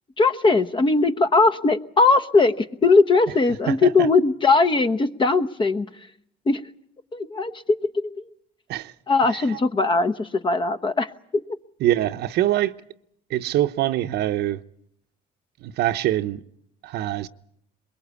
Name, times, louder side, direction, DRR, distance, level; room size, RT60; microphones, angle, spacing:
voice 1, 0.2-5.9 6.5-6.6 7.1-8.1 9.1-11.4, left 3 dB, 30° left, 1.1 m, -20 dB
voice 2, 11.8-12.7 13.3-14.6 15.6-16.4 16.8-17.3, right 13 dB, 75° right, 0.9 m, -23 dB
23.0 x 22.0 x 8.3 m
cardioid pair, 110°, 17 cm